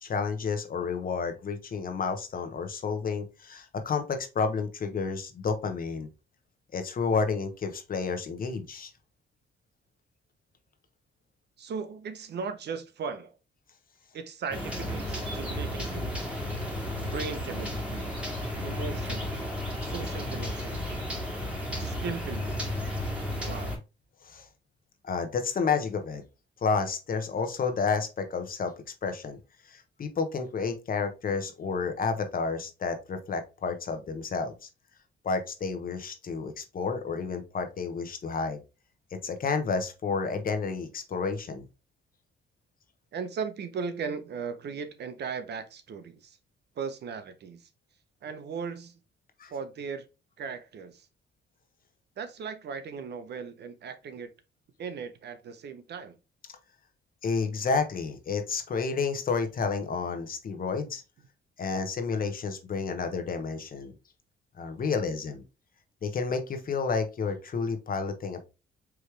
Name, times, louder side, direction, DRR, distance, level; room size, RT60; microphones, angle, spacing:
voice 1, 0.0-6.1 6.7-8.9 24.2-24.5 25.0-26.2 26.6-28.7 29.0-29.4 29.7-34.7 35.2-38.6 39.2-41.6 49.4-49.5 57.2-61.0 61.6-63.9 64.6-65.4 66.0-68.4, left 5 dB, 45° left, 1.0 m, -30 dB
voice 2, 11.6-13.4 14.1-16.1 17.0-18.1 18.6-19.4 19.8-21.0 21.8-22.6 23.4-23.8 43.1-46.4 46.8-47.7 48.2-48.9 49.5-50.0 50.4-51.1 52.2-54.3 54.8-56.2, right 5 dB, 55° right, 0.8 m, -37 dB
sound 1, 14.5-23.8, left 1 dB, 5° right, 1.9 m, -33 dB
4.7 x 3.2 x 3.2 m
cardioid pair, 90°, 20 cm